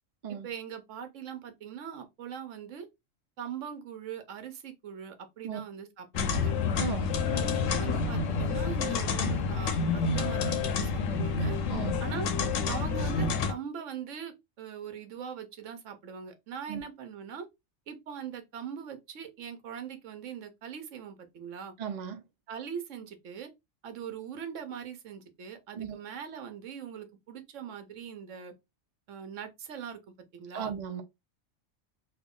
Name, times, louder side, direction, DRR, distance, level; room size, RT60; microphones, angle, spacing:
voice 1, 0.3-2.9 3.4-6.5 7.3-11.6 12.0-12.3 12.7-17.5 17.9-21.7 22.5-23.5 23.8-28.5 29.1-30.0 30.3-30.7, right 7 dB, 75° right, 1.1 m, -41 dB
sound 1, 6.1-13.5, left 4 dB, 80° left, 1.0 m, -28 dB
voice 2, 6.8-7.1 11.7-11.9 16.7-16.8 21.8-22.2 25.8-26.0 30.5-31.0, right 8 dB, 60° right, 0.4 m, -35 dB
3.4 x 2.1 x 3.6 m
omnidirectional pair, 1.3 m